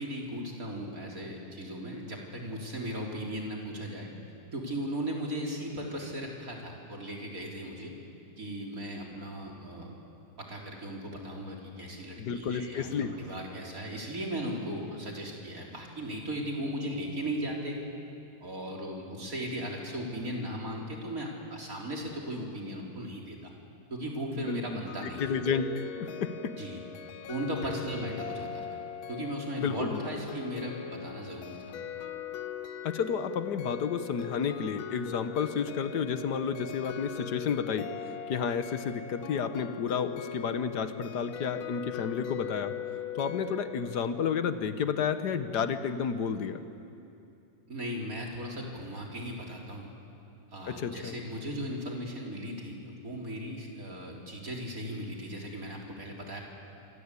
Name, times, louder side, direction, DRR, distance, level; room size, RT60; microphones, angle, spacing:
voice 1, 0.0-4.1 4.5-7.9 8.4-10.0 10.4-17.8 18.4-23.5 23.9-25.3 26.6-26.8 27.3-28.8 29.1-31.8 47.7-49.9 50.5-56.4, equal, 40° right, -1 dB, 4.3 m, -37 dB
voice 2, 12.2-13.1 24.4-26.5 29.5-30.0 32.8-37.9 38.3-46.6 50.7-51.2, left 6 dB, 55° left, 10 dB, 1.6 m, -31 dB
sound 1, 24.9-44.1, left 9 dB, 70° left, 1.6 m, -41 dB
26.5 x 26.0 x 8.4 m, 2.7 s
omnidirectional pair, 2.3 m